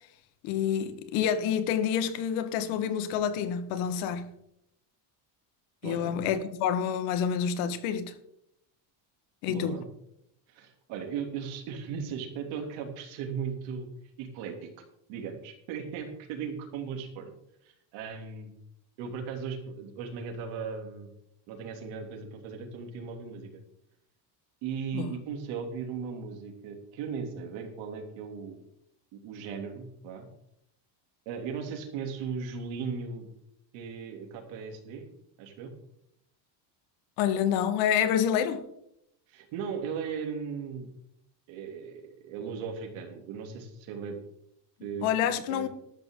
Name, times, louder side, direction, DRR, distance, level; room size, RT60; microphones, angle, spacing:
voice 1, 0.4-4.3 5.8-8.1 9.4-9.8 24.9-25.1 37.2-38.6 45.0-45.7, left 8 dB, 80° left, 1.7 m, -28 dB
voice 2, 5.8-6.4 9.5-9.9 10.5-13.9 14.2-14.7 15.1-17.3 17.6-18.5 19.0-21.1 21.5-23.5 24.6-28.6 29.1-30.3 31.2-33.3 33.7-35.1 35.4-35.7 39.3-40.9 41.5-44.2 44.8-45.7, right 6 dB, 70° right, 3.1 m, -37 dB
13.0 x 12.5 x 3.8 m
cardioid pair, 175°, 48 cm